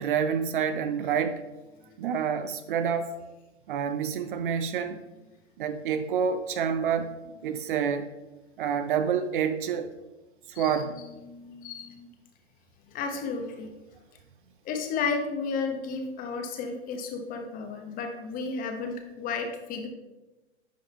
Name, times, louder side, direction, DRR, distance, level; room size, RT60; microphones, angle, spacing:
voice 1, 0.0-1.4 2.0-3.2 3.7-5.0 5.6-7.1 7.4-8.1 8.6-9.9 10.5-11.0, right 7 dB, 45° right, 10 dB, 0.5 m, -28 dB
voice 2, 11.2-12.1 12.9-13.7 14.6-19.9, left 4 dB, 25° left, 4 dB, 1.1 m, -33 dB
10.0 x 5.4 x 3.6 m, 1.1 s
hypercardioid pair, 135°, 35 cm